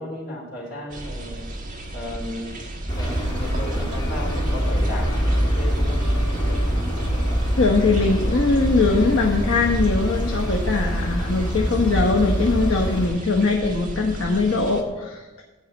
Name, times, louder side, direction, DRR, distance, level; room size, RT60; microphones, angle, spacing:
voice 1, 0.0-1.5 1.9-2.5 3.0-6.0, left 1 dB, 45° left, -3 dB, 3.6 m, -34 dB
sound 1, 0.9-14.8, right 1 dB, 35° right, 1.4 m, -35 dB
sound 2, 2.9-13.1, equal, 20° left, 2.0 m, -24 dB
voice 2, 7.6-15.4, left 3 dB, 65° left, 0 dB, 1.1 m, -21 dB
13.5 x 4.8 x 8.2 m, 1.2 s
head